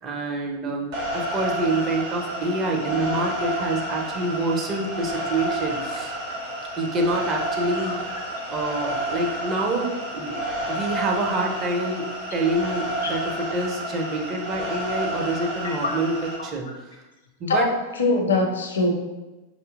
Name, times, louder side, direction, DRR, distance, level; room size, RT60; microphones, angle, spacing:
voice 1, 0.0-6.1 6.8-8.0 8.5-10.4 10.7-17.0 17.4-17.7, right 2 dB, 30° right, 1 dB, 0.6 m, -27 dB
sound 1, 0.9-16.4, right 1 dB, 55° right, 1.0 m, -30 dB
voice 2, 18.0-18.9, left 3 dB, 65° left, 2 dB, 0.6 m, -22 dB
4.9 x 2.7 x 2.4 m, 1.1 s
figure-of-eight pair, 90°, 0 cm